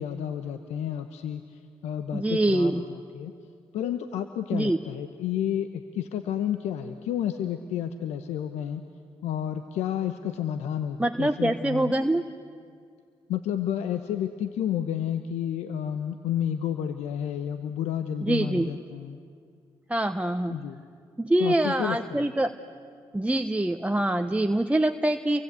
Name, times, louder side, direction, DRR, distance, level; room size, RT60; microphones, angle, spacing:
voice 1, 0.0-3.3 3.7-8.8 9.2-11.9 13.3-19.2 20.5-20.8 21.4-22.2, left 10 dB, 85° left, 9 dB, 1.0 m, -31 dB
voice 2, 2.1-2.8 4.5-4.8 11.0-12.2 18.2-18.7 19.9-20.6 21.2-22.5 23.1-25.4, right 1 dB, 10° right, 6 dB, 1.1 m, -24 dB
29.5 x 24.0 x 8.2 m, 2.2 s
supercardioid pair, 45°, 11 cm